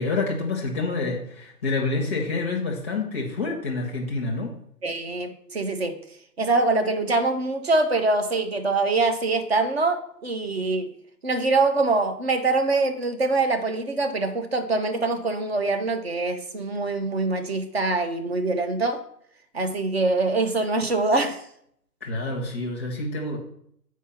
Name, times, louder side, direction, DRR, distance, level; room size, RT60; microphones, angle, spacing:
voice 1, 0.0-4.5 22.0-23.4, left 3 dB, 10° left, -1 dB, 0.6 m, -27 dB
voice 2, 4.8-6.0 6.4-10.8 11.2-19.0 19.5-21.4, right 3 dB, 40° right, 7 dB, 0.8 m, -24 dB
7.3 x 4.7 x 5.7 m, 0.68 s
hypercardioid pair, 155°, 49 cm